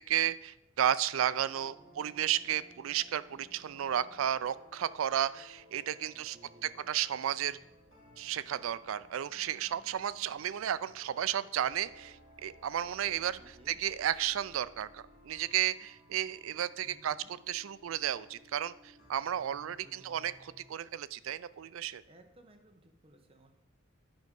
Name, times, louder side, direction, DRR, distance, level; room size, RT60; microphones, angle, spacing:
voice 1, 0.0-6.4 6.6-7.6 8.2-13.4 13.7-22.0, right 10 dB, 70° right, 17 dB, 0.4 m, -33 dB
sound 1, 1.3-20.7, equal, 65° left, 3.6 m, -59 dB
voice 2, 1.6-2.1 6.1-6.9 13.0-13.8 16.8-17.3 19.5-20.3 22.0-23.5, right 1 dB, 30° right, 4 dB, 1.0 m, -60 dB
9.1 x 5.3 x 5.2 m, 0.84 s
head